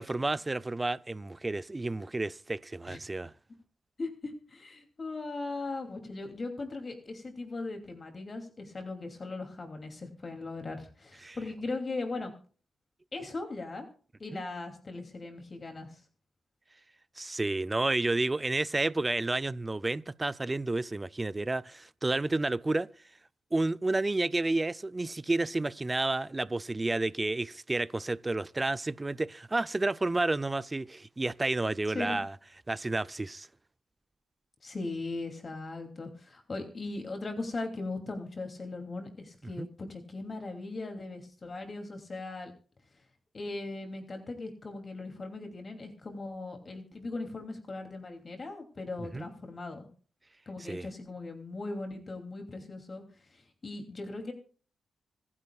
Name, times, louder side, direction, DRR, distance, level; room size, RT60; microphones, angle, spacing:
voice 1, 0.0-3.3 11.2-11.4 14.3-14.4 17.2-22.9 23.5-32.3 32.7-33.5 39.6-39.7 49.0-49.3 50.7-50.9, right 2 dB, 25° right, 0.5 m, -31 dB
voice 2, 4.0-12.3 13.1-13.9 14.2-16.0 31.9-32.2 34.6-42.5 43.3-49.9 50.5-53.0 53.3-54.3, left 3 dB, 40° left, 2.8 m, -39 dB
25.0 x 9.7 x 2.4 m
cardioid pair, 70°, 0 cm